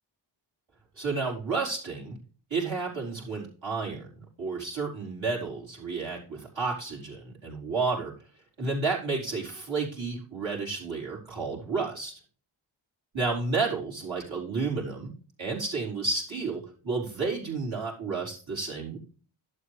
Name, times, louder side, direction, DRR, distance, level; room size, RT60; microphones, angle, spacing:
voice 1, 1.0-2.2 2.5-4.1 4.4-8.1 8.6-12.1 13.1-15.1 15.4-19.0, right 4 dB, 70° right, -5 dB, 4.7 m, -31 dB
11.5 x 7.9 x 3.4 m, 0.41 s
wide cardioid pair, 70°, 48 cm